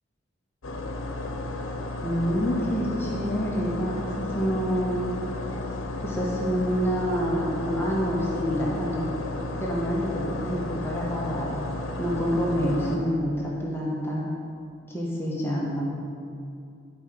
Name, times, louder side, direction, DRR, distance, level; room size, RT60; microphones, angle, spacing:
sound 1, 0.6-13.0, left 2 dB, 80° left, 1.0 m, -33 dB
voice 1, 2.0-5.0 6.0-9.0 9.6-11.6 12.0-14.2 14.9-15.8, equal, 10° left, -5 dB, 1.3 m, -27 dB
10.5 x 4.9 x 6.1 m, 2.4 s
head